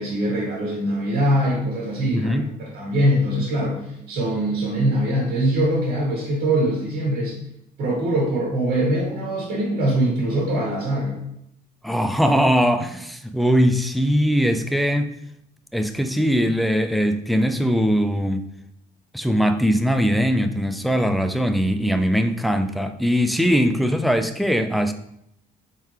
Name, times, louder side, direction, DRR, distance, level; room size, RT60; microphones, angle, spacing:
voice 1, 0.0-7.4 7.8-11.2, right 1 dB, 60° right, -4 dB, 1.7 m, -23 dB
voice 2, 2.1-2.5 11.8-15.1 15.7-18.5 19.1-24.9, equal, ahead, 7 dB, 0.3 m, -21 dB
4.2 x 3.8 x 3.2 m, 0.75 s
cardioid pair, 110°, 17 cm